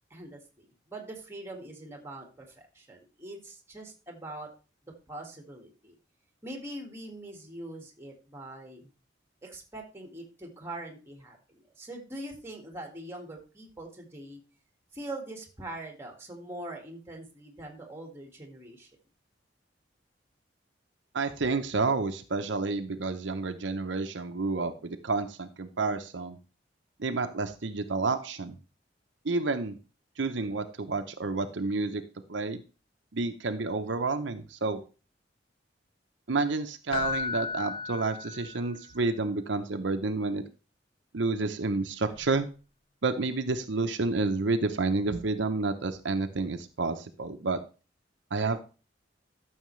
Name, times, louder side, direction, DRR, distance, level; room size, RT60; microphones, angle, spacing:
voice 1, 0.1-4.5 5.1-5.9 6.4-8.9 9.4-14.4 14.9-18.9, right 1 dB, 15° right, 2 dB, 1.9 m, -43 dB
voice 2, 21.1-26.4 27.0-28.5 29.2-29.8 30.2-32.0 32.3-32.6 33.1-34.8 36.3-40.4 41.1-42.5 43.0-47.6 48.3-48.6, right 3 dB, 80° right, 7 dB, 0.8 m, -30 dB
Keyboard (musical), 36.9-38.9 42.1-42.3, left 5 dB, 25° left, 0.5 m, -34 dB
13.0 x 6.4 x 3.2 m, 0.34 s
head